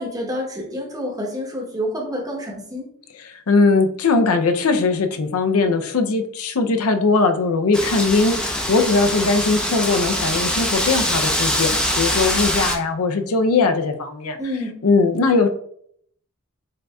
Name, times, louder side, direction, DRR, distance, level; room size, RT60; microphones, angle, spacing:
voice 1, 0.0-2.9 14.4-14.8, equal, 15° right, -1 dB, 0.9 m, -28 dB
voice 2, 3.3-14.4 14.8-15.5, left 3 dB, 85° left, 7 dB, 0.5 m, -19 dB
Wind, 7.7-12.7, equal, 5° left, 0.5 m, -23 dB
7.4 x 2.6 x 2.3 m, 0.65 s
head